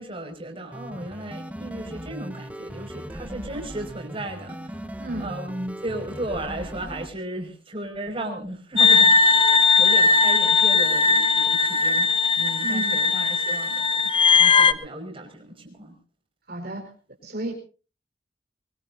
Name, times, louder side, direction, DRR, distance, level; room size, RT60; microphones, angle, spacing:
voice 1, 0.0-4.9 5.2-9.5 9.8-12.1 12.4-15.9, right 1 dB, 30° right, 3 dB, 5.6 m, -35 dB
sound 1, 0.7-7.1, equal, 10° right, 1.3 m, -38 dB
voice 2, 5.0-5.3 12.6-13.0 16.5-16.9 17.2-17.5, right 1 dB, 60° right, 1 dB, 4.7 m, -32 dB
sound 2, 8.8-14.7, left 5 dB, 30° left, 1.0 m, -18 dB
23.5 x 22.5 x 2.7 m, 0.36 s
head